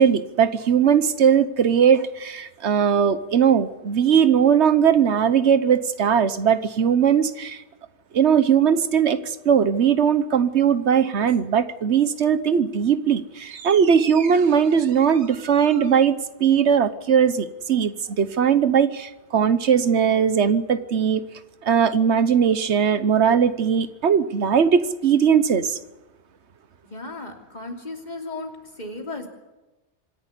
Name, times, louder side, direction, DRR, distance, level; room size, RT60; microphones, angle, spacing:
voice 1, 0.0-7.6 8.1-21.2 21.6-25.8, right 7 dB, 75° right, 13 dB, 1.2 m, -19 dB
voice 2, 26.8-29.3, left 2 dB, 40° left, 2 dB, 3.1 m, -35 dB
25.5 x 11.0 x 9.8 m, 1.1 s
omnidirectional pair, 1.2 m